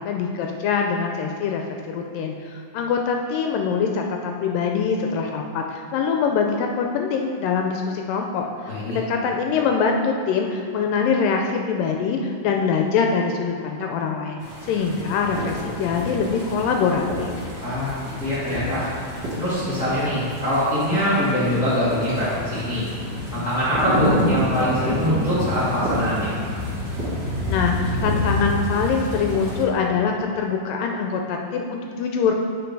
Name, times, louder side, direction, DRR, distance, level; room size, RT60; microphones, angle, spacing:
voice 1, 0.0-17.5 27.4-32.3, left 5 dB, 80° left, 2 dB, 2.0 m, -24 dB
voice 2, 8.7-9.0 17.6-18.9 19.4-22.9 23.3-26.3, equal, 35° left, -12 dB, 1.8 m, -23 dB
sound 1, 14.4-29.6, left 1 dB, 40° right, 1.9 m, -28 dB
9.0 x 5.0 x 4.6 m, 2.1 s
omnidirectional pair, 4.2 m